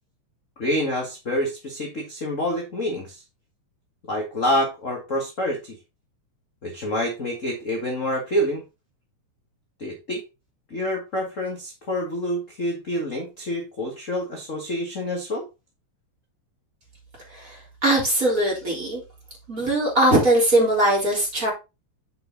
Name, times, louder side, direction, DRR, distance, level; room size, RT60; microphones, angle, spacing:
voice 1, 0.6-3.2 4.1-5.8 6.6-8.6 9.8-10.2 10.7-15.5, equal, 35° left, 0 dB, 1.5 m, -27 dB
voice 2, 17.8-19.0 19.5-21.5, right 1 dB, 25° right, -3 dB, 3.9 m, -20 dB
7.8 x 5.3 x 3.9 m, 0.26 s
omnidirectional pair, 3.4 m